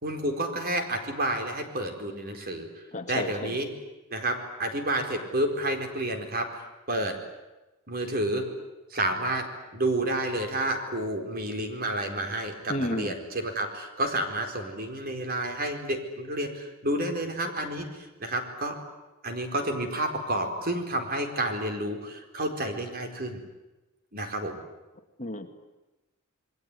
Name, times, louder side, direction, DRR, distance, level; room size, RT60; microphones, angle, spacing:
voice 1, 0.0-3.7 4.1-7.2 7.9-8.4 8.9-9.5 9.7-18.7 19.2-23.4 24.1-24.6, right 1 dB, 45° right, 5 dB, 4.5 m, -30 dB
voice 2, 2.9-3.6 12.7-13.1 25.2-25.5, left 1 dB, 35° left, 6 dB, 2.1 m, -31 dB
28.0 x 21.0 x 9.9 m, 1.1 s
head